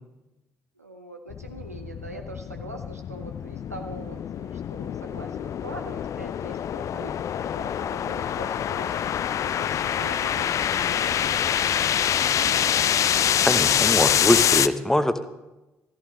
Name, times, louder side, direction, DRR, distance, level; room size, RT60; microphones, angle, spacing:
voice 1, 0.8-9.0 9.4-11.5 11.8-12.9 14.1-14.6, right 2 dB, 90° right, 4 dB, 0.7 m, -42 dB
sound 1, 1.3-14.7, left 9 dB, 40° left, 0.4 m, -25 dB
voice 2, 13.4-15.3, left 1 dB, 5° left, 11 dB, 0.8 m, -23 dB
14.0 x 13.0 x 3.2 m, 1.0 s
figure-of-eight pair, 50°, 8 cm